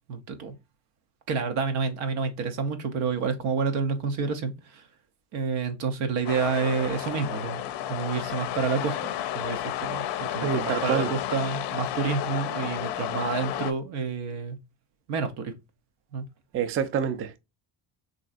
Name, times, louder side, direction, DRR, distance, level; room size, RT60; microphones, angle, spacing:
voice 1, 0.1-0.5 1.3-4.9 5.3-14.6 15.1-15.5 16.1-16.2, right 5 dB, 80° right, 0.8 m, -29 dB
sound 1, 6.3-13.7, left 11 dB, 55° left, 0.5 m, -32 dB
voice 2, 10.4-11.1 16.5-17.4, right 7 dB, 30° right, 0.4 m, -27 dB
3.1 x 2.6 x 2.3 m
supercardioid pair, 65°, 50 cm